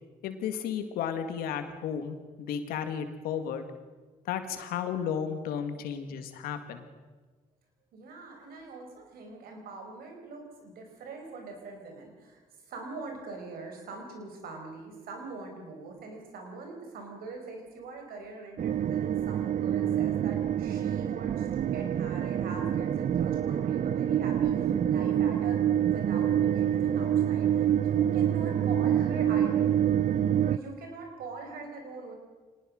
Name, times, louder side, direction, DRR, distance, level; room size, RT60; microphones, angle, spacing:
voice 1, 0.2-3.6 4.3-6.9, left 8 dB, 85° left, 8 dB, 2.0 m, -33 dB
voice 2, 7.9-12.4 12.7-29.7 30.5-32.1, right 3 dB, 80° right, 3 dB, 5.1 m, -43 dB
sound 1, 18.6-30.6, right 10 dB, 55° right, 0.6 m, -26 dB
24.0 x 19.0 x 6.5 m, 1.4 s
supercardioid pair, 55°, 15 cm